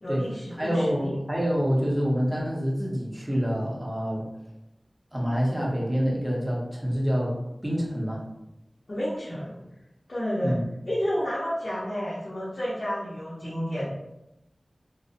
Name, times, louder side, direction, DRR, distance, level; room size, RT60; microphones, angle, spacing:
voice 1, 0.0-1.1 8.9-9.6 10.1-10.6 10.9-13.9, equal, 50° left, -9 dB, 0.6 m, -30 dB
voice 2, 0.6-4.2 5.1-7.3 7.6-8.2 10.4-10.6, equal, 20° right, -4 dB, 0.7 m, -26 dB
2.4 x 2.0 x 2.7 m, 0.91 s
wide cardioid pair, 70°, 0 cm